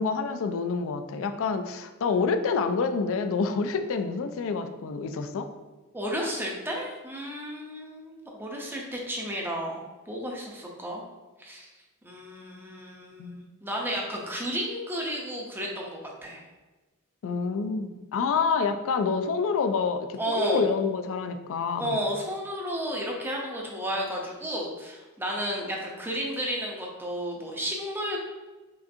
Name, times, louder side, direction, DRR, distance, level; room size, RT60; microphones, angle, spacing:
voice 1, 0.0-5.5 13.2-13.5 17.2-22.0, left 5 dB, 60° left, 8 dB, 0.3 m, -27 dB
voice 2, 5.9-11.0 11.4-11.7 12.0-16.4 20.2-20.7 21.8-28.2, equal, 10° right, -1 dB, 0.6 m, -32 dB
5.1 x 2.5 x 2.6 m, 1.2 s
head